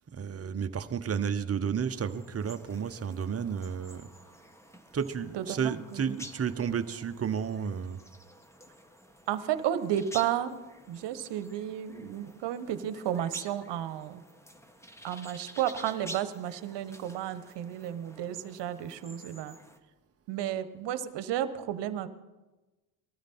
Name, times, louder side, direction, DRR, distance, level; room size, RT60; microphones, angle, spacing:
voice 1, 0.1-4.1 4.9-8.0, right 7 dB, 30° right, 10 dB, 1.0 m, -32 dB
sound 1, 1.9-19.8, equal, 5° left, 1.5 m, -50 dB
voice 2, 5.3-6.2 9.3-10.6 10.9-14.2 15.0-19.5 20.3-22.1, right 11 dB, 60° right, 12 dB, 1.2 m, -32 dB
20.0 x 13.0 x 4.3 m, 1.1 s
hypercardioid pair, 65°, 48 cm